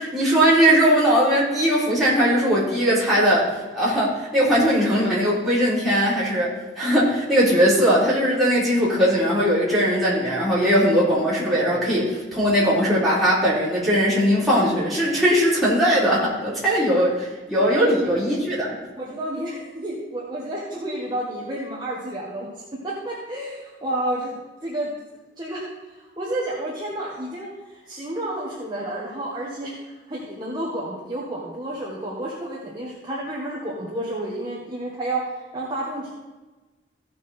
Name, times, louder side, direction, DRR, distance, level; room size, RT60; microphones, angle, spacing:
voice 1, 0.0-18.7, equal, ahead, -9 dB, 3.7 m, -20 dB
voice 2, 19.0-22.5 22.8-24.9 25.4-25.6 26.0-35.3 35.5-36.1, right 1 dB, 25° right, -6 dB, 1.5 m, -30 dB
15.0 x 6.0 x 4.4 m, 1.2 s
head